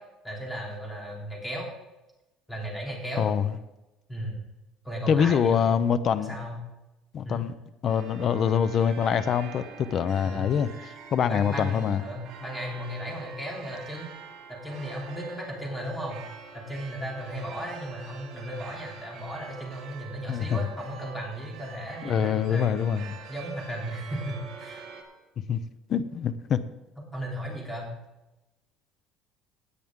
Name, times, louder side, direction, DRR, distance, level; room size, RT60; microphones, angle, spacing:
voice 1, 0.2-1.7 2.5-3.2 4.1-4.4 4.8-5.8 6.2-6.6 7.2-7.5 10.2-10.5 11.2-14.1 14.5-16.2 16.5-22.8 23.3-24.8 27.1-27.9, equal, 10° left, -2 dB, 3.1 m, -35 dB
voice 2, 3.2-3.5 5.1-6.3 7.1-7.5 7.8-12.0 20.3-20.5 22.0-23.1 25.5-25.6 25.9-26.6, left 8 dB, 40° left, 14 dB, 0.6 m, -25 dB
sound 1, 7.9-25.0, right 6 dB, 50° right, 2.9 m, -45 dB
16.5 x 9.0 x 3.7 m, 1.0 s
cardioid pair, 150°, 0 cm